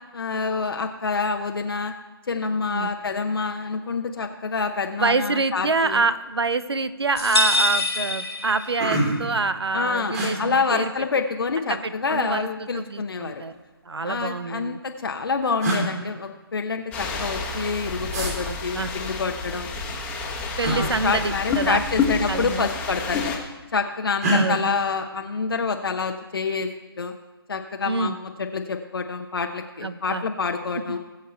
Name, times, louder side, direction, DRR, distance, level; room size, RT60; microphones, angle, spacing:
voice 1, 0.1-1.9 2.3-6.0 9.7-13.4 14.0-19.7 20.7-23.4 23.7-26.7 27.0-27.1 27.5-31.0, left 4 dB, 65° left, 4 dB, 0.9 m, -27 dB
voice 2, 5.0-10.9 11.7-13.5 13.9-14.8 18.5-18.9 20.6-21.8 22.3-22.7 24.3-24.6 27.8-28.2 29.8-30.2, right 3 dB, 80° right, 13 dB, 0.8 m, -26 dB
sound 1, 6.5-6.7 7.0-7.5 8.0-8.1 8.4-9.3 10.1-10.3 11.6-12.2 13.4-14.2 15.1-15.2 15.6-15.9 18.1-18.3 20.6-20.8 22.2-22.4 22.7-23.3 24.2-24.4, right 1 dB, 40° right, 3.3 m, -27 dB
sound 2, 7.2-9.1, left 1 dB, 85° left, 1.9 m, -24 dB
sound 3, 16.9-23.4, left 4 dB, 10° left, 1.4 m, -29 dB
20.0 x 7.4 x 4.4 m, 1.2 s
figure-of-eight pair, 150°, 13 cm